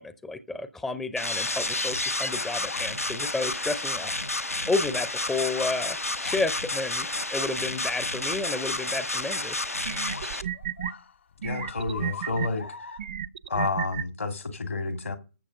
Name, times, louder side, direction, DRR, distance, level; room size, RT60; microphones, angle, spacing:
voice 1, 0.0-4.1 4.7-9.6, left 3 dB, 5° left, 0.6 m, -31 dB
sound 1, 1.2-10.4, left 2 dB, 90° left, 1.0 m, -30 dB
sound 2, 2.6-3.5 4.1-4.2 5.4-6.6 7.5-7.6 8.0-8.1 10.1-13.0, left 6 dB, 55° left, 1.0 m, -43 dB
sound 3, 9.3-9.4 9.8-10.9 11.4-12.5 13.0-14.0, right 9 dB, 40° right, 0.7 m, -32 dB
voice 2, 11.4-12.9 13.5-15.2, left 3 dB, 70° left, 2.1 m, -30 dB
13.5 x 7.3 x 6.4 m
figure-of-eight pair, 140°, 8 cm